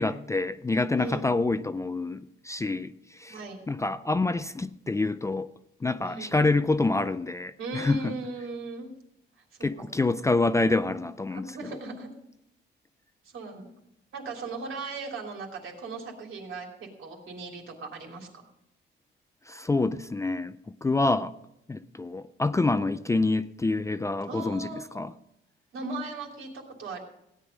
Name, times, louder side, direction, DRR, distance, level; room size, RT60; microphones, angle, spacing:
voice 1, 0.0-3.4 3.7-5.5 5.8-8.2 9.6-11.5 19.5-21.3 21.7-24.7 25.0-25.1, left 3 dB, 15° left, 0.4 m, -27 dB
voice 2, 6.0-6.6 7.6-8.9 9.4-9.5 11.3-12.1 13.2-13.7 14.1-18.5 24.3-24.8 25.7-27.0, right 3 dB, 75° right, 3.2 m, -38 dB
16.5 x 9.7 x 5.2 m
cardioid pair, 150°, 21 cm